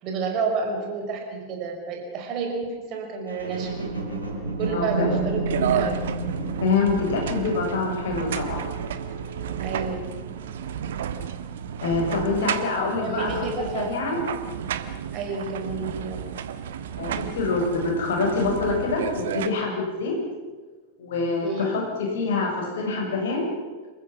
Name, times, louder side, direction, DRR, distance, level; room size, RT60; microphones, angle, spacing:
voice 1, 0.0-3.7 4.6-5.9 9.6-10.1 13.0-13.9 15.1-16.3 21.4-21.7, right 4 dB, 40° right, 2 dB, 5.5 m, -30 dB
sound 1, 3.3-10.7 11.3-11.4, right 3 dB, 80° right, 6.4 m, -32 dB
voice 2, 4.7-5.1 6.6-8.6 11.8-13.5 13.7-14.2 17.0-20.1 21.0-23.4, left 4 dB, 60° left, 1 dB, 6.5 m, -25 dB
sound 2, 5.5-19.5, right 9 dB, 60° right, 1.4 m, -32 dB
27.0 x 15.0 x 7.4 m, 1.3 s
figure-of-eight pair, 90°, 0 cm